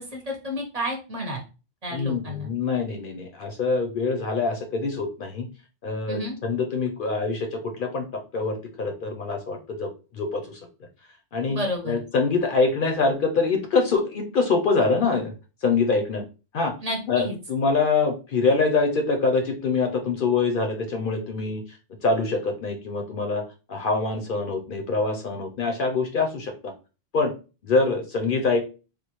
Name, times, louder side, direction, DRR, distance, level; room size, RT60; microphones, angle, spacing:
voice 1, 0.0-1.4 1.8-2.5 6.1-6.3 11.5-12.0 16.8-17.4, equal, 40° right, 0 dB, 0.8 m, -31 dB
voice 2, 1.9-5.5 5.8-10.6 11.3-11.6 11.9-15.3 15.6-16.2 16.5-16.7 17.1-21.6 22.0-23.4 23.7-26.7 27.1-27.3 27.6-28.6, left 4 dB, 60° left, 4 dB, 0.7 m, -24 dB
3.5 x 2.4 x 2.9 m, 0.32 s
omnidirectional pair, 1.1 m